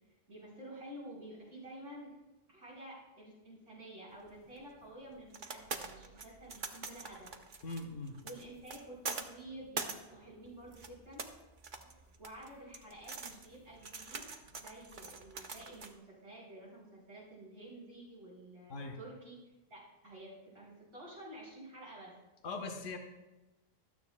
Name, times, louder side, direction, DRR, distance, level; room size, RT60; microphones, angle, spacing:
voice 1, 0.3-2.2 2.5-7.3 8.2-11.2 12.2-22.1, right 1 dB, 70° right, -6 dB, 5.3 m, -51 dB
sound 1, 4.2-15.9, right 4 dB, 45° right, 1.0 m, -45 dB
voice 2, 7.6-8.2 18.7-19.0 22.4-23.0, left 3 dB, 75° left, 4 dB, 1.5 m, -40 dB
25.0 x 9.3 x 2.2 m, 1.1 s
omnidirectional pair, 1.3 m